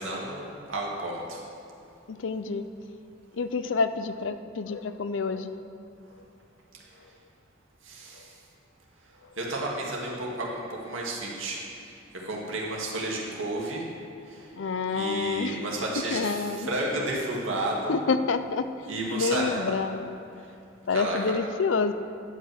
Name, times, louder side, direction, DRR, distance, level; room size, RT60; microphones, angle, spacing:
voice 1, 0.0-1.4 7.8-8.3 9.4-13.9 14.3-14.5 14.9-18.0 18.9-19.8 20.9-21.2, right 2 dB, 90° right, -3 dB, 2.2 m, -32 dB
voice 2, 2.1-2.6 3.4-5.5 14.5-15.6 16.1-16.7 17.9-18.7 19.1-20.1 20.9-21.9, left 4 dB, 70° left, 11 dB, 0.5 m, -28 dB
11.0 x 5.6 x 7.8 m, 2.6 s
head